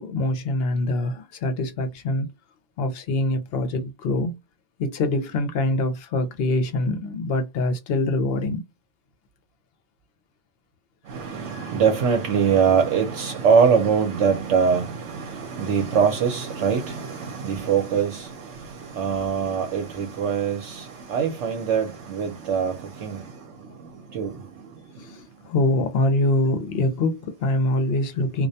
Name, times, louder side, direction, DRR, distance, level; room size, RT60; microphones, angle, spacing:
voice 1, 0.0-2.3 2.8-4.4 4.8-8.6 11.5-11.7 25.0-28.5, left 2 dB, 60° left, 0.8 m, -24 dB
voice 2, 11.1-18.3 19.0-20.8 21.1-22.7 23.0-23.2 24.1-24.3, right 6 dB, 75° right, 0.9 m, -22 dB
2.3 x 2.1 x 2.6 m
omnidirectional pair, 1.2 m